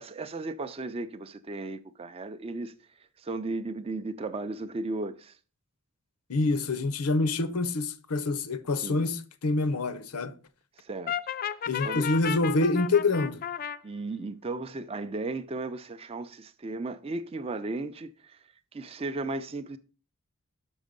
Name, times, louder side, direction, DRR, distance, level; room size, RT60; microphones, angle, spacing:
voice 1, 0.0-2.7 3.2-5.4 8.8-9.0 10.8-11.1 11.8-12.1 13.8-18.4 18.7-19.8, right 2 dB, 25° right, 0.4 m, -35 dB
voice 2, 6.3-10.3 11.7-13.4, left 3 dB, 90° left, 0.7 m, -26 dB
Brass instrument, 11.1-13.8, left 9 dB, 40° left, 0.3 m, -33 dB
6.3 x 5.7 x 5.2 m
head